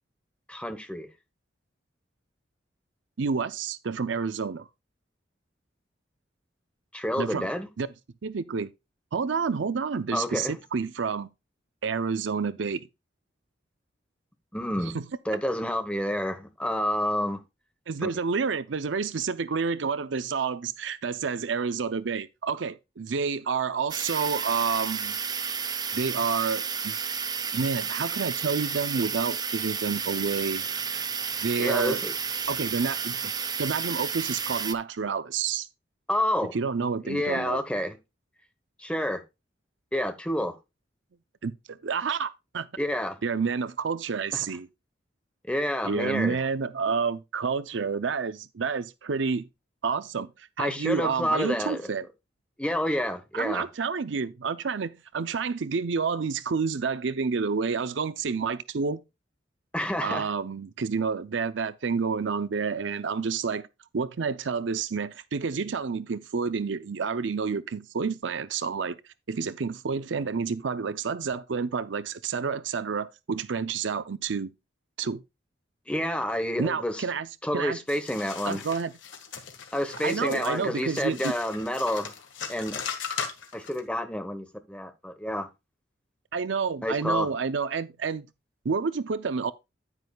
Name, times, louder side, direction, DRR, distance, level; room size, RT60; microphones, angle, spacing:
voice 1, 0.5-1.1 6.9-7.7 10.1-10.6 14.5-14.9 15.2-17.4 18.0-18.1 31.6-32.1 36.1-36.5 37.0-38.0 38.8-39.2 39.9-40.5 42.8-43.2 44.3-44.4 45.5-46.4 50.6-51.8 52.6-53.7 59.7-60.3 75.9-77.0 77.4-78.6 79.7-82.1 82.5-82.8 83.5-85.5 86.8-87.3, left 1 dB, 5° left, 1.0 m, -29 dB
voice 2, 3.2-4.7 7.2-7.5 7.8-7.9 8.2-8.7 9.1-11.3 11.8-12.8 14.9-15.1 17.9-25.2 25.9-26.9 27.5-30.7 31.4-32.0 32.5-33.3 33.6-35.7 36.5-37.6 41.4-42.7 43.2-44.7 45.8-49.5 49.8-50.3 50.6-52.1 53.3-59.0 60.0-63.7 63.9-69.0 69.3-74.5 75.0-75.2 76.6-77.3 77.5-77.8 78.5-78.9 80.0-81.3 86.3-88.3 88.6-89.5, right 5 dB, 80° right, 0.6 m, -29 dB
sound 1, 23.9-34.7, right 6 dB, 20° right, 0.5 m, -31 dB
sound 2, 77.9-83.8, left 6 dB, 90° left, 1.8 m, -38 dB
9.6 x 9.5 x 2.3 m
head